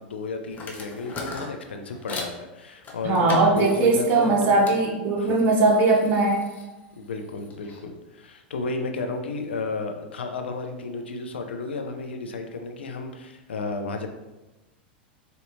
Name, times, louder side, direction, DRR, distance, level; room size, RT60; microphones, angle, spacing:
voice 1, 0.0-4.6 5.2-5.5 7.0-14.1, left 3 dB, 90° left, 5 dB, 0.5 m, -32 dB
sound 1, 0.5-2.4 2.8-4.8 5.2-7.8, left 3 dB, 30° left, 0.7 m, -40 dB
voice 2, 3.0-6.4, right 3 dB, 40° right, -2 dB, 0.8 m, -20 dB
4.4 x 2.7 x 2.6 m, 1.1 s
hypercardioid pair, 105°, 6 cm